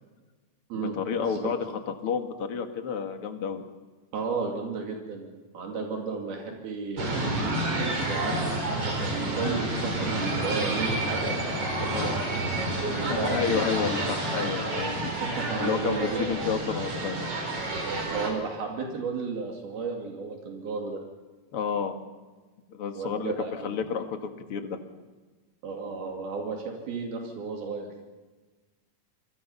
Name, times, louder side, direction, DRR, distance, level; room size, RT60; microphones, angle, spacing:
voice 1, 0.7-1.7 2.0-3.6 11.9-12.2 13.1-15.1 15.6-17.2 21.5-21.9 22.7-24.8, left 6 dB, 45° left, 5 dB, 2.2 m, -30 dB
voice 2, 4.1-5.3 5.5-7.2 8.0-13.4 15.2-16.2 18.1-21.0 23.0-23.7 25.6-28.0, right 4 dB, 80° right, 1 dB, 4.4 m, -33 dB
sound 1, 7.0-18.3, right 2 dB, 40° right, 5.0 m, -29 dB
28.5 x 24.0 x 5.6 m, 1.3 s
omnidirectional pair, 4.3 m